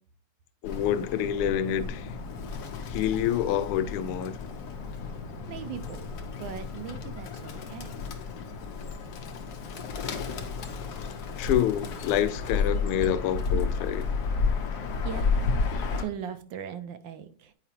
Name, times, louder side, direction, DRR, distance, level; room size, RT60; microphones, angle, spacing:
voice 1, 0.6-2.1 2.9-4.4 11.4-14.0, left 10 dB, 90° left, 1.5 m, -27 dB
Bird, 0.6-16.0, left 4 dB, 60° left, 1.1 m, -32 dB
voice 2, 5.5-6.1 6.4-8.0 14.7-15.3 15.7-17.5, right 8 dB, 70° right, 1.2 m, -39 dB
8.9 x 4.9 x 2.8 m
omnidirectional pair, 2.4 m